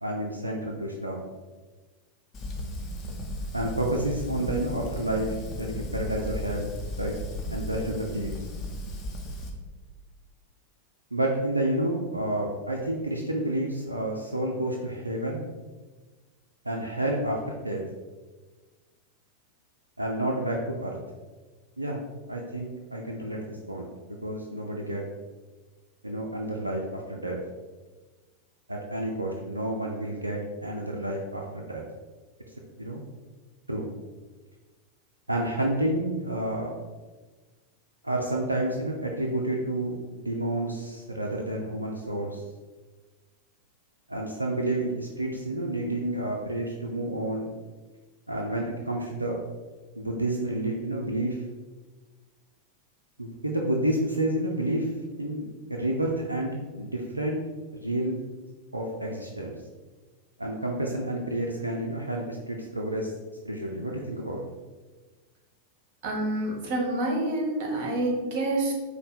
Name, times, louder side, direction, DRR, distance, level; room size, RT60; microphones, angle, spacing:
voice 1, 0.0-1.2 3.5-7.1 7.5-8.3 11.1-15.4 16.6-17.4 17.6-17.8 20.0-21.0 21.8-22.0 22.3-25.0 26.0-27.4 28.7-31.8 32.8-33.0 33.7-33.9 35.3-36.7 38.0-42.4 44.1-47.5 48.3-49.4 50.0-51.4 53.2-54.9 55.2-57.4 57.7-58.2 58.7-59.6 60.4-63.1 63.4-64.4, right 1 dB, 85° right, -1 dB, 0.4 m, -30 dB
Fire, 2.3-9.5, left 1 dB, 25° left, 0.7 m, -35 dB
voice 2, 66.0-68.7, right 1 dB, 45° right, 0 dB, 1.2 m, -27 dB
5.2 x 2.1 x 4.4 m, 1.3 s
figure-of-eight pair, 90°, 0 cm